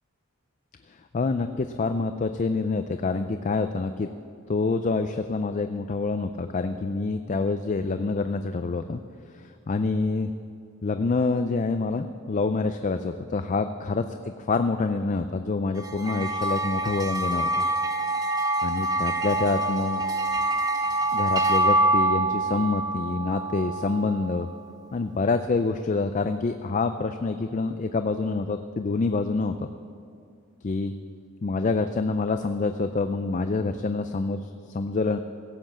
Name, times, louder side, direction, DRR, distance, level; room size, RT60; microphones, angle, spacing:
voice 1, 1.1-4.1 4.5-9.0 9.7-10.3 10.8-17.6 18.6-20.0 21.1-24.5 24.9-29.7 30.6-30.9 31.4-35.2, left 3 dB, 35° left, 8 dB, 0.4 m, -27 dB
sound 1, 15.8-24.4, right 2 dB, 15° right, 0.6 m, -26 dB
16.5 x 7.8 x 7.3 m, 2.4 s
head